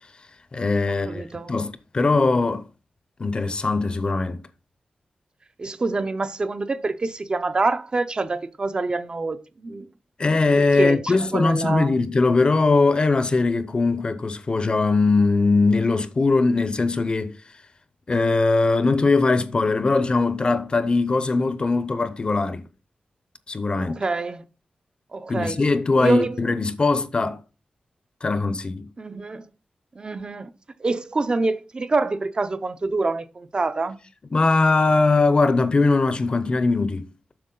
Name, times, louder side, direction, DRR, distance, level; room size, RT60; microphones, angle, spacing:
voice 1, 0.5-2.7 3.2-4.4 10.2-17.3 18.1-22.6 23.5-24.0 25.3-27.4 28.2-28.9 34.3-37.1, left 3 dB, 35° left, 0.6 m, -21 dB
voice 2, 1.0-1.5 5.6-9.9 10.6-11.9 23.8-24.4 25.1-25.6 26.0-26.4 29.0-29.4 30.0-30.5 30.8-34.0, right 3 dB, 35° right, 0.6 m, -26 dB
7.8 x 6.3 x 3.8 m
wide cardioid pair, 145°, 3 cm